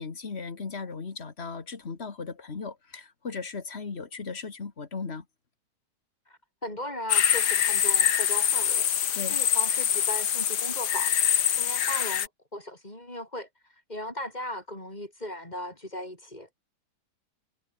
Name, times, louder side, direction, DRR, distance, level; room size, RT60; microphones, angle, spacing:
voice 1, 0.0-5.3 9.1-9.4, left 4 dB, 40° left, 1.9 m, -37 dB
voice 2, 6.3-8.9 9.3-11.1 11.6-16.5, left 1 dB, 25° left, 7.7 m, -38 dB
sound 1, 7.1-12.3, left 9 dB, 75° left, 1.8 m, -24 dB
omnidirectional pair, 1.8 m